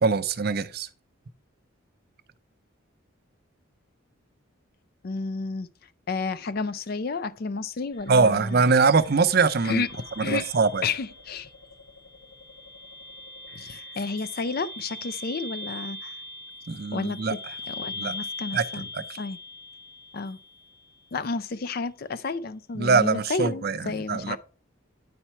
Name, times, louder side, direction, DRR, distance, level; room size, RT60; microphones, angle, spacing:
voice 1, 0.0-0.9 8.1-9.8 10.2-10.8 16.7-17.3 18.0-18.1 18.5-18.6 18.9-19.0 22.8-24.4, right 4 dB, 50° right, 0.5 m, -22 dB
voice 2, 5.0-5.7 6.1-8.7 9.6-9.9 10.2-10.5 10.8-11.5 13.6-16.1 16.9-17.2 17.7-18.9 19.2-19.4 20.1-20.4 21.1-24.4, left 4 dB, 45° left, 0.4 m, -31 dB
sound 1, 7.9-20.9, left 2 dB, 75° left, 2.8 m, -41 dB
9.9 x 4.3 x 4.4 m
head